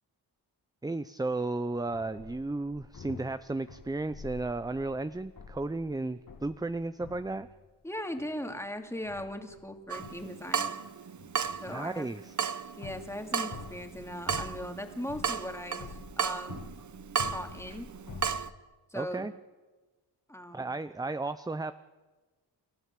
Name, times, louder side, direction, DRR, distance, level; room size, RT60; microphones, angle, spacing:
voice 1, 0.8-7.5 11.7-12.3 18.9-19.3 20.5-21.7, right 2 dB, 10° right, 12 dB, 0.5 m, -34 dB
sound 1, 1.7-7.7 8.0-8.7 9.0-10.5 10.8-18.6, left 5 dB, 50° left, 1.9 m, -48 dB
voice 2, 7.8-10.7 11.6-12.1 12.8-16.6 17.3-17.9 18.9-19.3 20.3-20.7, left 1 dB, 5° left, 4 dB, 2.4 m, -39 dB
Water tap faucet / Drip, 9.9-18.5, right 6 dB, 45° right, 0.9 m, -35 dB
29.0 x 12.5 x 7.5 m, 1.3 s
cardioid pair, 70°, 43 cm